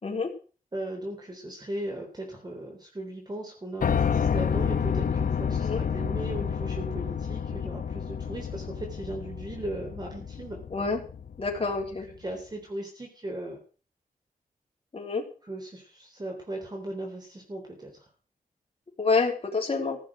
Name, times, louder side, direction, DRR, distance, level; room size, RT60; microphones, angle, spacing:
voice 1, 0.7-10.6 12.2-13.6 15.4-18.1, right 1 dB, 30° right, 1 dB, 3.8 m, -37 dB
Piano, 3.8-11.8, left 7 dB, 65° left, 0.9 m, -29 dB
voice 2, 11.4-12.1 14.9-15.2 19.0-20.0, left 4 dB, 40° left, -1 dB, 3.6 m, -27 dB
15.0 x 7.2 x 7.7 m, 0.39 s
wide cardioid pair, 100°, 15 cm